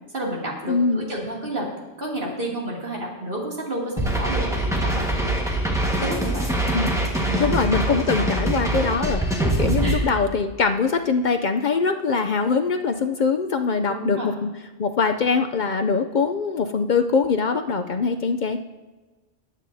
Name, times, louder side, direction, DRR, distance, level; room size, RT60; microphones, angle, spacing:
voice 1, 0.1-1.7 2.0-5.3 6.0-6.5 7.1-7.6 8.2-8.3 9.3-9.5 9.8-10.1 13.9-14.3, right 1 dB, 60° right, -3 dB, 2.9 m, -30 dB
voice 2, 0.6-1.0 6.7-7.0 7.4-14.5 14.8-18.6, left 5 dB, 55° left, 7 dB, 0.6 m, -23 dB
sound 1, 4.0-10.0, right 1 dB, 5° right, 1.4 m, -23 dB
19.5 x 9.2 x 2.7 m, 1.2 s
omnidirectional pair, 1.0 m